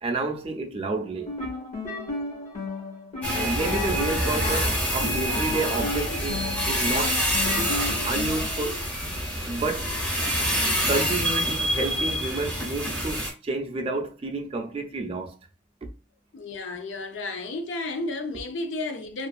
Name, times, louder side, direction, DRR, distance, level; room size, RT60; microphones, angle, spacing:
voice 1, 0.0-1.3 3.3-7.2 7.6-8.9 9.5-9.9 10.9-15.3, right 3 dB, 30° right, 0.4 m, -30 dB
sound 1, 1.1-8.6, left 2 dB, 40° left, 0.8 m, -34 dB
sound 2, 3.2-13.3, equal, 10° left, 0.6 m, -26 dB
voice 2, 16.3-19.3, left 2 dB, 80° left, 0.4 m, -32 dB
2.5 x 2.3 x 2.3 m
head